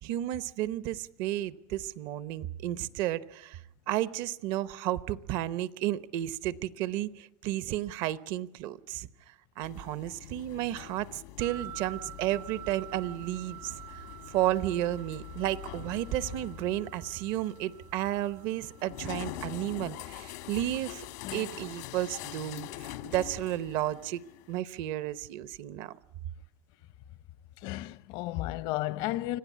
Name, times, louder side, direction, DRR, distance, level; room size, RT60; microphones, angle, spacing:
voice 1, 0.0-3.6 3.9-21.0 21.3-24.2 24.5-25.9, right 13 dB, 65° right, 0.9 m, -32 dB
sound 1, 9.6-24.6, left 15 dB, 85° left, 1.5 m, -44 dB
sound 2, 11.4-20.7, right 14 dB, 85° right, 7.1 m, -49 dB
voice 2, 27.6-29.4, left 16 dB, 65° left, 0.7 m, -33 dB
25.5 x 16.0 x 8.4 m
cardioid pair, 140°, 8 cm